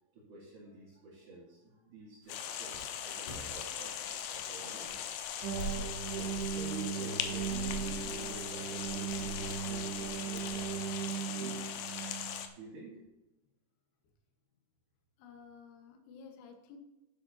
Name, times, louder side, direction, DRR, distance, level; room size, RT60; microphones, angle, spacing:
voice 1, 0.1-5.3 6.1-11.7 12.6-13.0, right 3 dB, 50° right, -7 dB, 3.8 m, -50 dB
sound 1, 2.2-10.7, right 1 dB, 55° left, 4.8 m, -46 dB
sound 2, 2.3-12.5, left 9 dB, 90° left, 3.2 m, -40 dB
sound 3, 5.4-12.5, right 8 dB, 70° right, 2.5 m, -38 dB
voice 2, 15.2-16.8, left 5 dB, 70° left, 4 dB, 3.4 m, -53 dB
12.0 x 9.9 x 2.8 m, 0.99 s
omnidirectional pair, 5.2 m